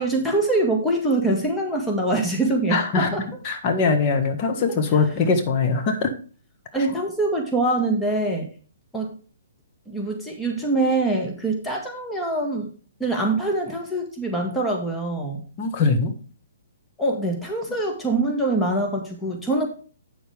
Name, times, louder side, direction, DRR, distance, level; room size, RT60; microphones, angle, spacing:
voice 1, 0.0-3.2 6.7-8.5 8.9-9.1 9.9-12.7 13.0-15.4 17.0-19.7, right 2 dB, 10° left, 1 dB, 1.8 m, -24 dB
voice 2, 2.7-3.1 3.4-6.1 6.8-6.9 15.6-16.1, left 4 dB, 35° left, 5 dB, 1.7 m, -21 dB
8.8 x 7.2 x 3.5 m, 0.39 s
hypercardioid pair, 135°, 0 cm